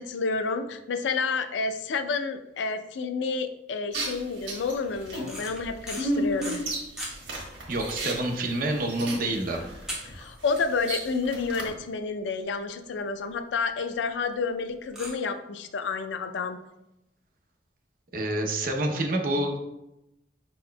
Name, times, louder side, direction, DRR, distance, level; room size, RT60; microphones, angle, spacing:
voice 1, 0.0-6.6 10.0-16.6, left 4 dB, 85° left, 8 dB, 0.4 m, -30 dB
sound 1, 3.9-11.7, right 1 dB, 85° right, 1.4 m, -34 dB
sound 2, 5.3-7.1 7.7-7.8 8.0-8.2 8.7-8.8 9.9-10.7 11.0-11.1 11.6-11.7 11.9-12.0 12.3-12.4 13.6-13.7 14.9-15.1, equal, 5° right, 1.0 m, -37 dB
voice 2, 7.7-9.6 18.1-19.6, right 1 dB, 50° right, 3 dB, 0.7 m, -27 dB
5.5 x 4.2 x 2.2 m, 0.90 s
head